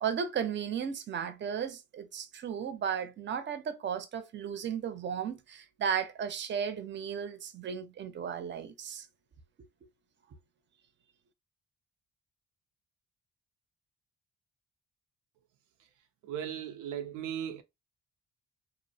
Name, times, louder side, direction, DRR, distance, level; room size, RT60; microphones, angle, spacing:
voice 1, 0.0-9.1, right 7 dB, 40° right, 0.5 m, -35 dB
voice 2, 16.2-17.6, right 9 dB, 85° right, 0.5 m, -37 dB
2.5 x 2.0 x 2.6 m
cardioid pair, 90°, 30 cm